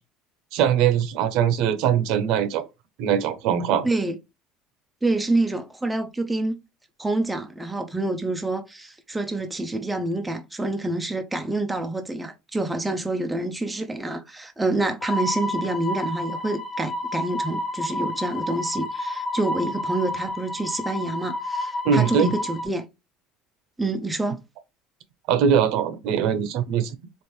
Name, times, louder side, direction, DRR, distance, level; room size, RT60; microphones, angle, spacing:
voice 1, 0.5-2.7 3.0-3.9 21.8-22.3 25.3-27.0, right 8 dB, 60° right, 0.7 m, -21 dB
voice 2, 3.8-4.2 5.0-6.6 7.0-22.9 23.8-24.4, right 2 dB, 5° right, 0.4 m, -27 dB
sound 1, 15.0-22.6, left 1 dB, 35° left, 1.1 m, -30 dB
4.5 x 3.0 x 3.2 m
cardioid pair, 170°, 0 cm